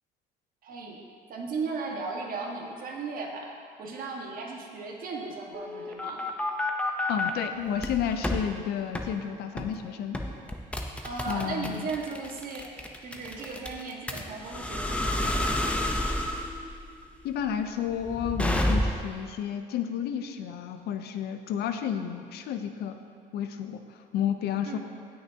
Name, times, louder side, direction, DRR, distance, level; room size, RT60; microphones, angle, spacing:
voice 1, 0.6-1.0 1.3-3.5 3.8-6.3 11.0-15.7 24.6-24.8, right 4 dB, 55° right, -1 dB, 1.7 m, -36 dB
sound 1, 5.5-7.3 7.8-8.4 8.9-9.1 9.6-9.8 10.1-19.2, left 1 dB, 5° left, 0.8 m, -30 dB
voice 2, 7.1-10.2 11.3-11.9 17.2-23.0 23.3-23.8 24.1-24.8, left 8 dB, 70° left, 8 dB, 0.7 m, -31 dB
17.5 x 6.6 x 2.9 m, 2.2 s
cardioid pair, 110°, 17 cm